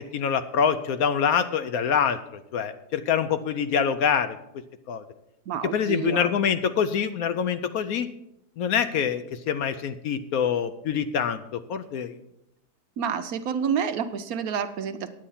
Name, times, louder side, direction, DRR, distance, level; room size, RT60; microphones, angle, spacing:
voice 1, 0.1-4.4 4.9-5.0 5.7-8.1 8.6-12.2, left 7 dB, 70° left, 10 dB, 0.9 m, -25 dB
voice 2, 5.5-6.3 13.0-15.1, right 7 dB, 65° right, 10 dB, 1.0 m, -28 dB
9.9 x 8.6 x 5.5 m, 0.84 s
omnidirectional pair, 1.8 m